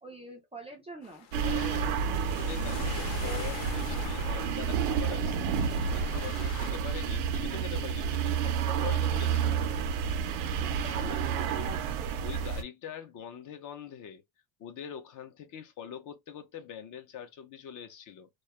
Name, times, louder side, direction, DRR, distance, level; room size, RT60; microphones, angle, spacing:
voice 1, 0.0-1.3 10.6-12.2, right 2 dB, 15° right, 0.3 m, -44 dB
sound 1, 1.0-6.7, left 8 dB, 70° left, 0.9 m, -45 dB
sound 2, 1.3-12.6, right 6 dB, 70° right, 0.6 m, -30 dB
voice 2, 1.4-9.6 10.9-11.0 12.2-14.2 14.6-18.3, left 8 dB, 45° left, 0.6 m, -43 dB
2.3 x 2.0 x 2.8 m
cardioid pair, 130°, 43 cm